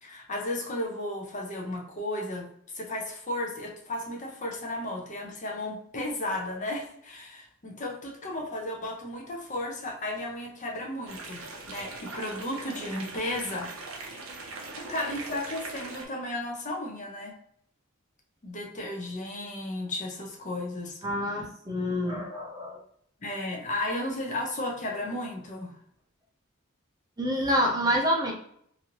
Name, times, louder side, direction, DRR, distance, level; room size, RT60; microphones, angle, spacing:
voice 1, 0.0-2.5 2.7-11.4 11.7-13.7 14.9-17.3 18.4-21.0 23.2-25.7, left 1 dB, 35° left, 0 dB, 0.6 m, -34 dB
sound 1, 11.1-16.0, right 3 dB, 85° right, 0.7 m, -40 dB
voice 2, 21.0-22.8 27.2-28.3, equal, 20° right, -1 dB, 0.5 m, -27 dB
3.0 x 2.6 x 2.8 m, 0.66 s
head